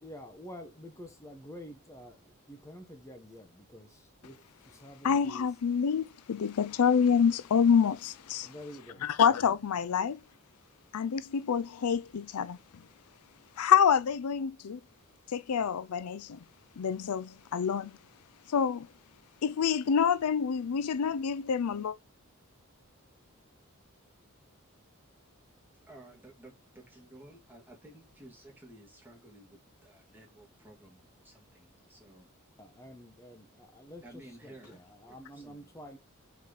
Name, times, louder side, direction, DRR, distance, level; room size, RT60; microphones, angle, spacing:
voice 1, 0.0-5.5 8.4-9.1 32.6-36.0, equal, 15° left, 1.2 m, -49 dB
voice 2, 5.0-8.5 9.0-10.2 10.9-12.6 13.6-14.8 15.3-16.4 16.8-17.9 18.5-18.9 19.4-21.9, left 7 dB, 85° left, 0.5 m, -27 dB
voice 3, 25.9-32.3 34.0-34.8 35.1-35.7, right 1 dB, 10° right, 2.3 m, -54 dB
5.5 x 4.8 x 4.0 m
head